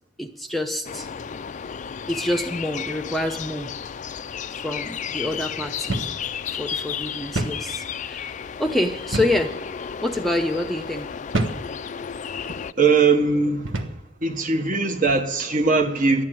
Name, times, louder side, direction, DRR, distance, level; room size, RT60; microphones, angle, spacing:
voice 1, 0.2-1.1 2.1-3.7 4.6-6.1 6.5-9.5 10.0-11.1, left 1 dB, ahead, 0.7 m, -27 dB
sound 1, 0.8-12.7, left 7 dB, 40° left, 0.4 m, -33 dB
sound 2, 5.9-6.2 6.5-6.6 7.4-7.7 9.1-9.5 10.2-10.4 11.3-11.7 12.4-12.6 13.7-14.0, right 2 dB, 85° right, 1.2 m, -27 dB
voice 2, 12.7-13.9 14.2-16.2, right 4 dB, 45° right, 1.4 m, -20 dB
12.5 x 9.5 x 9.2 m
head